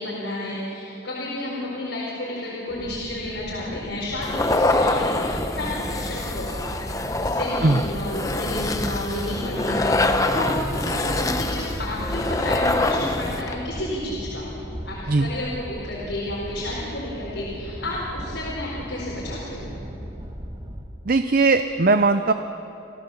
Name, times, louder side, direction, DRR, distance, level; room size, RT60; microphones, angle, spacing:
voice 1, 0.0-14.5 14.8-19.7, left 1 dB, 85° left, -5 dB, 4.6 m, -31 dB
sound 1, 2.7-20.8, equal, 25° right, 2.0 m, -38 dB
sound 2, 4.2-13.5, left 2 dB, 20° left, 0.9 m, -25 dB
voice 2, 21.1-22.3, right 3 dB, 50° right, 9 dB, 0.6 m, -19 dB
28.5 x 15.0 x 7.1 m, 2.8 s
head